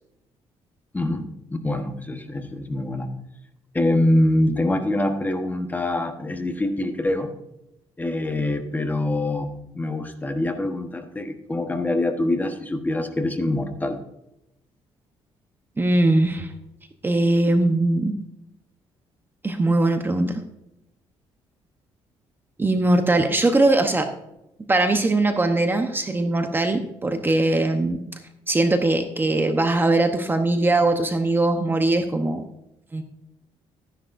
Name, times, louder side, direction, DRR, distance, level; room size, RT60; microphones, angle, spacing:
voice 1, 0.9-3.1 3.7-7.3 8.0-14.0, left 1 dB, 15° left, 6 dB, 1.2 m, -24 dB
voice 2, 15.8-16.5 17.0-18.1 19.4-20.4 22.6-24.1 24.7-28.0 28.5-32.4 32.9-33.0, right 2 dB, 20° right, 6 dB, 0.9 m, -21 dB
13.5 x 10.0 x 2.6 m, 0.86 s
cardioid pair, 105°, 11 cm